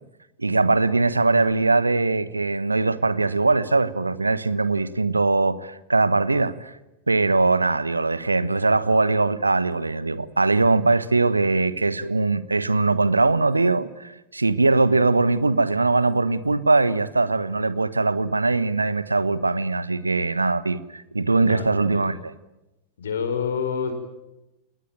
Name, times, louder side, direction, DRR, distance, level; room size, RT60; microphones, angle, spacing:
voice 1, 0.4-6.8 7.1-22.3, right 3 dB, 80° right, 1.1 m, -21 dB
voice 2, 21.3-22.1 23.0-23.9, left 6 dB, 65° left, 5.1 m, -28 dB
29.5 x 20.0 x 9.1 m
figure-of-eight pair, 90°, 0 cm